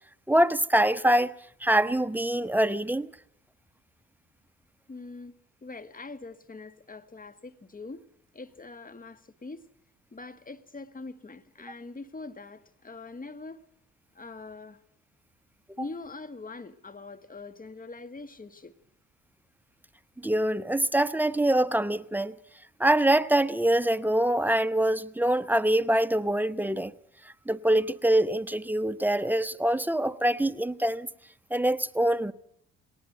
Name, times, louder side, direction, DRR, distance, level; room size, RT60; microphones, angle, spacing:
voice 1, 0.3-1.3 1.6-3.1 20.2-22.4 22.8-26.9 27.5-31.1 31.5-32.3, right 1 dB, 5° right, 1.0 m, -24 dB
voice 2, 4.9-5.3 5.6-8.0 8.3-9.6 10.1-13.6 14.1-14.8 15.8-18.7, left 3 dB, 25° left, 1.8 m, -43 dB
21.0 x 18.5 x 8.0 m
hypercardioid pair, 60°, 35 cm